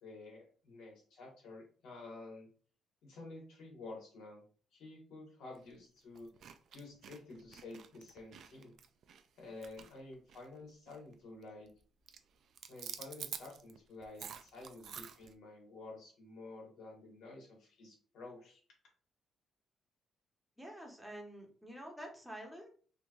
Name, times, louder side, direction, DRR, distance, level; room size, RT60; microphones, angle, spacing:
voice 1, 0.0-2.5 3.0-4.4 4.7-6.3 6.7-8.7 9.4-11.7 12.7-18.6, left 3 dB, 80° left, -1 dB, 1.6 m, -51 dB
sound 1, 5.5-5.7 6.1-10.6 10.9-11.1 11.4-11.8 12.1-15.3, right 8 dB, 65° right, 0.3 m, -49 dB
voice 2, 20.6-22.7, equal, 5° right, 0 dB, 1.1 m, -48 dB
3.3 x 3.0 x 2.4 m, 0.43 s
cardioid pair, 90°, 0 cm